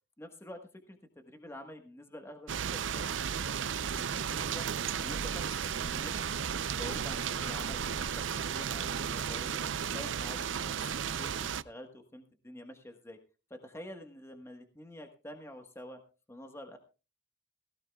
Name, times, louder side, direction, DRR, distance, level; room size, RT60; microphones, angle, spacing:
voice 1, 0.2-3.0 3.8-4.7 5.0-9.6 9.9-13.2 13.5-16.0 16.3-16.8, left 1 dB, 15° left, 5 dB, 1.3 m, -48 dB
sound 1, 2.5-11.6, right 7 dB, 85° right, 0.6 m, -34 dB
17.5 x 16.5 x 2.3 m, 0.33 s
head